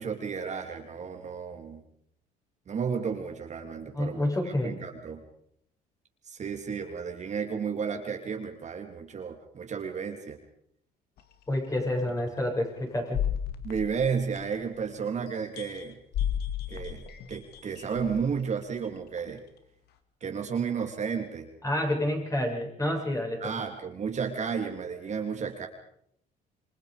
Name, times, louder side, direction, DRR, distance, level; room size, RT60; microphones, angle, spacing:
voice 1, 0.0-1.8 2.7-4.3 4.6-5.2 6.3-10.4 13.6-16.0 16.7-19.4 20.2-21.5 23.4-25.7, right 6 dB, 45° right, 3 dB, 3.2 m, -32 dB
voice 2, 3.9-4.7 11.5-13.2 21.6-23.5, left 1 dB, 20° left, 1 dB, 7.4 m, -29 dB
sound 1, 11.2-11.3 12.0-12.1 13.1-14.8 15.3-18.4 19.2-19.3, left 9 dB, 70° left, 2.5 m, -34 dB
28.5 x 24.0 x 5.2 m, 0.72 s
cardioid pair, 110°, 17 cm